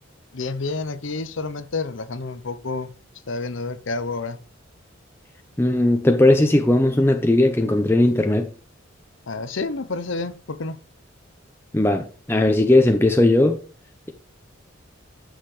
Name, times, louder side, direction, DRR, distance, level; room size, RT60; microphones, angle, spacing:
voice 1, 0.3-2.9 3.3-4.4 9.3-10.8, left 3 dB, 65° left, 0.8 m, -29 dB
voice 2, 5.6-8.5 11.7-13.6, left 1 dB, 10° left, 0.7 m, -18 dB
11.5 x 6.5 x 3.3 m
head